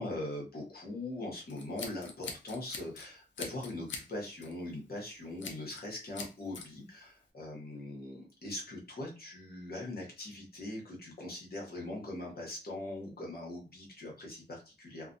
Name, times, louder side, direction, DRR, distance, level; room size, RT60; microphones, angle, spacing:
voice 1, 0.0-15.1, left 1 dB, 55° left, 0 dB, 1.1 m, -41 dB
Scissors, 1.5-3.1 3.4-4.1 4.4-4.6 5.4-5.9 6.1-6.7, left 4 dB, 90° left, 0.5 m, -43 dB
2.4 x 2.2 x 2.6 m, 0.31 s
wide cardioid pair, 95°, 19 cm